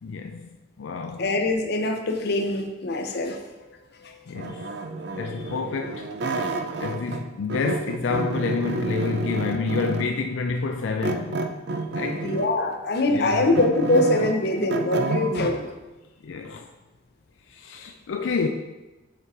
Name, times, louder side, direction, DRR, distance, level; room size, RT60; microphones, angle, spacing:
voice 1, 0.0-0.5 0.8-1.3 3.6-11.4 11.9-12.3 13.1-13.5 16.2-16.7 17.5-18.5, left 4 dB, 85° left, 0.4 m, -29 dB
voice 2, 1.2-3.4 12.2-15.6, left 2 dB, 55° left, 0.8 m, -23 dB
sound 1, 4.4-7.2 7.5-10.2 11.0-12.6 13.1-15.6, right 2 dB, 60° right, 0.5 m, -29 dB
5.7 x 4.7 x 4.9 m
head